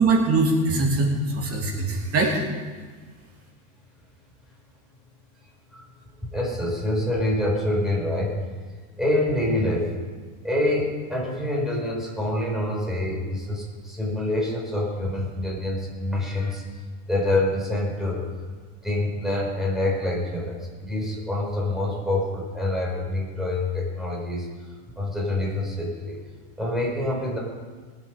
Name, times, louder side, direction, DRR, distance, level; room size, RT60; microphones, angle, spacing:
voice 1, 0.0-2.4, right 3 dB, 35° right, 0 dB, 2.9 m, -22 dB
voice 2, 6.2-8.3 9.0-9.9 10.4-16.6 17.1-18.3 18.8-24.5 25.0-26.2 26.6-27.4, left 1 dB, ahead, -3 dB, 4.8 m, -26 dB
21.5 x 8.6 x 5.2 m, 1.5 s
supercardioid pair, 125°, 40 cm